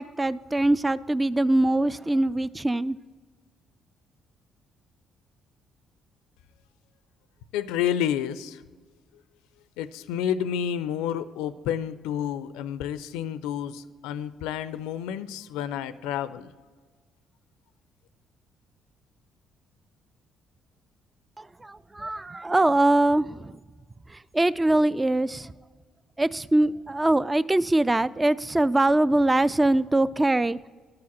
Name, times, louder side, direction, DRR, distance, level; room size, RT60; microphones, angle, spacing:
voice 1, 0.0-3.0 21.4-23.6 24.1-25.5 26.2-30.6, right 2 dB, 20° right, 0.3 m, -23 dB
voice 2, 7.5-8.6 9.8-16.4, left 9 dB, 85° left, 0.4 m, -30 dB
11.5 x 4.8 x 7.2 m
supercardioid pair, 65°, 0 cm